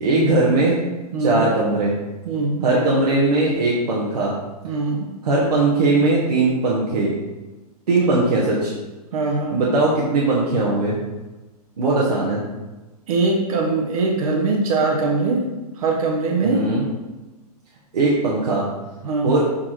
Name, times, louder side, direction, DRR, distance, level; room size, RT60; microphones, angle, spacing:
voice 1, 0.0-0.8 1.2-1.9 2.6-4.3 5.2-7.1 7.9-8.7 9.5-11.0 11.8-12.4 16.4-16.8 17.9-18.6 19.2-19.4, right 2 dB, 80° right, -5 dB, 1.5 m, -19 dB
voice 2, 1.1-1.5 2.3-2.6 4.6-5.1 8.1-8.2 9.1-9.6 13.1-15.4 15.8-16.6 19.0-19.3, right 3 dB, 60° right, 1 dB, 1.1 m, -21 dB
7.5 x 2.9 x 4.4 m, 1.1 s
hypercardioid pair, 140°, 20 cm